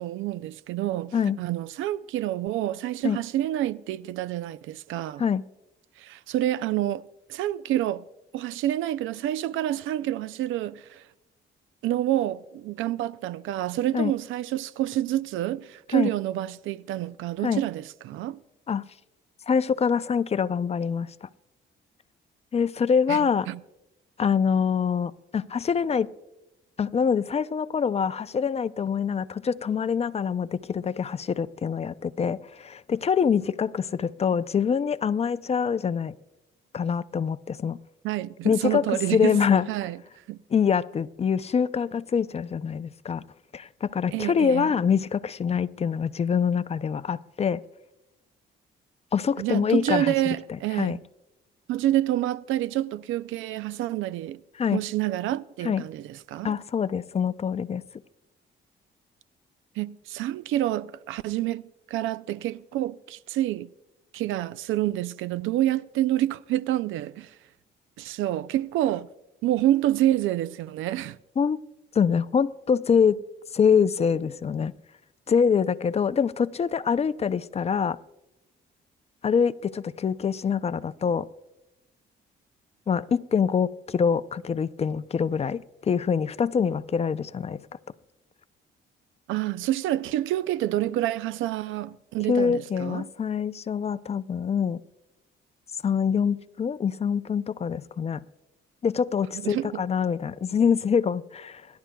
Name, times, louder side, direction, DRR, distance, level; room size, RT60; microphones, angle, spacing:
voice 1, 0.0-5.2 6.0-7.0 7.3-8.0 8.3-11.0 11.8-18.4 23.1-23.6 38.0-39.4 39.7-40.0 40.3-40.4 44.1-44.7 49.4-51.0 51.7-54.4 54.7-56.6 59.8-61.6 61.9-63.7 64.1-67.4 68.0-69.1 69.4-71.2 89.3-93.1 99.4-99.8, right 13 dB, 85° right, 0.4 m, -28 dB
voice 2, 19.5-21.3 22.5-23.5 24.2-26.1 26.8-36.1 36.7-37.8 38.4-39.7 40.5-43.2 43.5-47.6 49.1-50.1 50.5-51.0 54.6-54.8 55.6-55.8 56.4-57.8 71.4-71.6 71.9-73.2 73.5-74.7 75.3-78.0 79.2-81.3 82.9-87.7 92.3-94.8 95.8-98.3 98.8-101.7, left 6 dB, 30° left, 0.4 m, -25 dB
26.5 x 11.5 x 2.3 m
cardioid pair, 90°, 20 cm